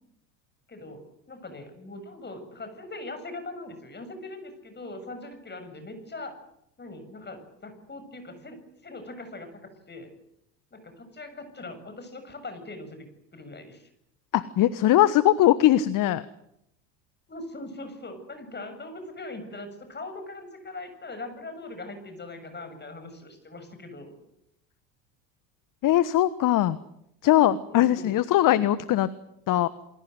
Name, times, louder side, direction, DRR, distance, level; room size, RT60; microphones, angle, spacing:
voice 1, 0.7-6.4 6.8-10.1 10.7-13.9 17.3-24.1 27.7-28.1, left 2 dB, 20° left, 8 dB, 7.2 m, -41 dB
voice 2, 14.3-16.2 25.8-26.8 27.2-29.1 29.5-29.7, left 13 dB, 40° left, 16 dB, 1.3 m, -21 dB
28.0 x 21.0 x 8.0 m, 0.80 s
figure-of-eight pair, 75°, 50 cm